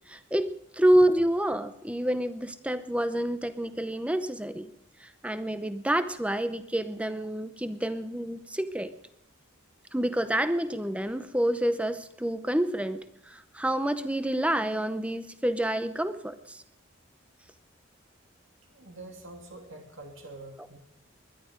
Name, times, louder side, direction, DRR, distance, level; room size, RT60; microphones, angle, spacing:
voice 1, 0.1-4.7 5.0-8.9 9.9-16.6, right 1 dB, 5° right, 11 dB, 0.7 m, -28 dB
voice 2, 18.6-20.8, right 2 dB, 70° right, 3 dB, 2.7 m, -46 dB
21.0 x 11.5 x 5.1 m, 0.80 s
head